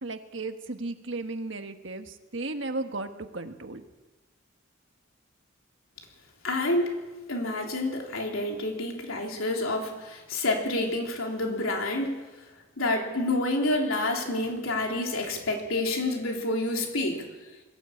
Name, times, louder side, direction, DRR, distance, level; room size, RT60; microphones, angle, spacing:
voice 1, 0.0-3.8, right 2 dB, 65° right, 7 dB, 1.5 m, -35 dB
voice 2, 6.4-7.0 7.3-12.2 12.8-17.3, left 2 dB, 90° left, 1 dB, 3.4 m, -28 dB
21.5 x 15.0 x 8.5 m, 1.2 s
head